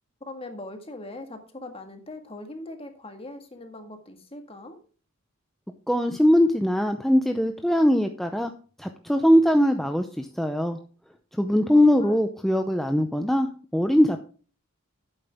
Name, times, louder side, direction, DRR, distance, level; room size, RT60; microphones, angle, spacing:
voice 1, 0.3-4.8 11.7-12.2, left 2 dB, 25° left, 6 dB, 1.8 m, -41 dB
voice 2, 5.9-8.5 8.8-10.8 11.3-14.2, equal, ahead, 6 dB, 0.6 m, -21 dB
11.0 x 8.9 x 3.5 m, 0.38 s
head